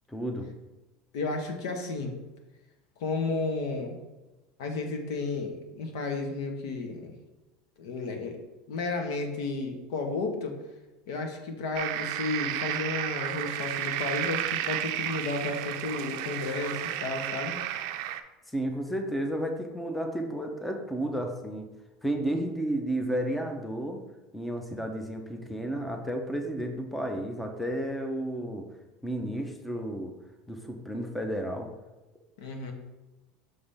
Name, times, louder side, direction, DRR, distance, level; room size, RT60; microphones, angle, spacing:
voice 1, 0.1-0.5 18.5-21.7 22.0-24.0 24.3-28.7 29.0-30.1 30.5-31.7, right 1 dB, 5° left, 4 dB, 0.5 m, -32 dB
voice 2, 1.1-2.1 3.0-4.0 4.6-7.1 7.8-8.4 8.7-10.6 11.1-17.6 32.4-32.7, left 3 dB, 90° left, 4 dB, 1.1 m, -32 dB
sound 1, 11.7-18.2, right 12 dB, 65° right, 0.4 m, -32 dB
5.9 x 3.3 x 5.5 m, 1.1 s
cardioid pair, 160°, 2 cm